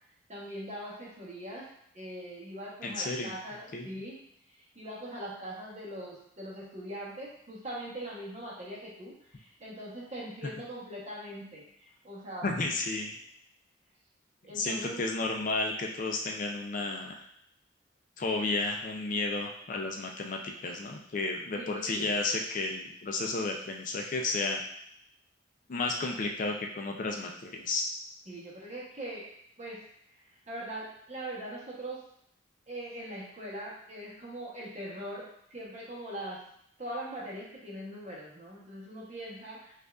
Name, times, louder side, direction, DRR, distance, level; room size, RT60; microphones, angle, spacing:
voice 1, 0.3-1.7 1.9-4.2 4.7-12.5 14.4-15.0 21.6-22.1 28.3-29.3 29.6-29.8 30.5-32.0 32.7-36.4 36.8-39.7, right 1 dB, 35° right, -4 dB, 0.9 m, -41 dB
voice 2, 2.8-3.3 3.7-3.9 12.4-13.1 14.5-17.2 18.2-24.6 25.7-27.9, left 3 dB, 45° left, 1 dB, 0.4 m, -32 dB
5.0 x 2.4 x 2.3 m, 0.72 s
head